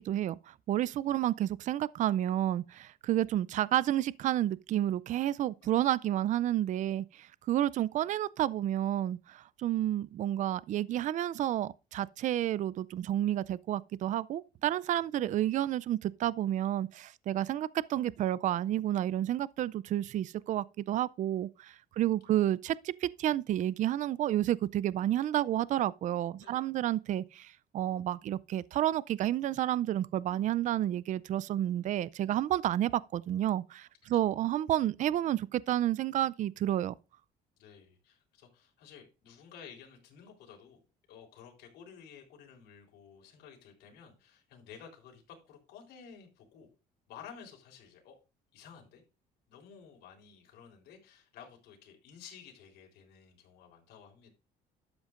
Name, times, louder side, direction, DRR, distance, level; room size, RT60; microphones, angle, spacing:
voice 1, 0.0-36.9, right 12 dB, 50° right, 0.4 m, -30 dB
voice 2, 37.6-40.8 41.1-46.7 47.1-48.2 48.5-49.0 49.5-54.3, left 7 dB, 80° left, 3.8 m, -53 dB
12.5 x 8.1 x 2.5 m
cardioid pair, 110°, 17 cm